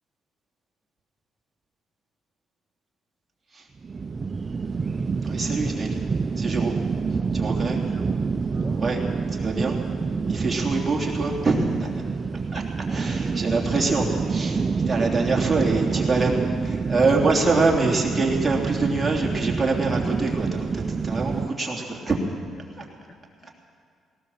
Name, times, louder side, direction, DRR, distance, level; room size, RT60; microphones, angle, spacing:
sound 1, 3.8-21.5, right 5 dB, 25° right, 0.4 m, -27 dB
voice 1, 5.2-6.0 6.4-6.7 7.3-7.8 8.8-9.0 9.4-9.8 10.3-11.9 12.5-12.6 12.9-22.2 22.8-22.9, right 3 dB, 10° right, -2 dB, 3.1 m, -25 dB
voice 2, 7.7-8.3 8.5-8.8 9.2-9.6 11.3-11.6 11.9-12.1 12.8-14.2 14.5-14.7 15.9-16.1 22.8-23.5, left 1 dB, 35° left, 2 dB, 1.8 m, -45 dB
19.5 x 18.0 x 7.3 m, 2.3 s
cardioid pair, 140°, 0 cm